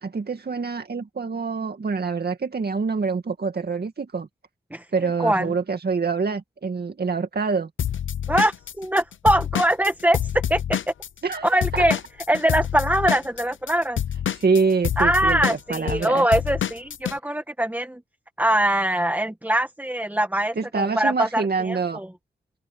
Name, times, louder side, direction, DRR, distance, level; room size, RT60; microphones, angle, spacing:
voice 1, 0.0-4.3 4.9-7.7 11.2-11.9 14.3-16.3 20.6-22.0, right 4 dB, 55° right, 2.2 m, -26 dB
voice 2, 5.2-5.5 8.3-10.9 11.4-12.0 12.3-14.0 15.0-18.0 18.4-22.1, right 1 dB, 10° right, 1.9 m, -22 dB
Drum kit / Drum, 7.8-11.4 11.6-17.2, left 9 dB, 80° left, 0.9 m, -27 dB
open air
cardioid pair, 50°, 20 cm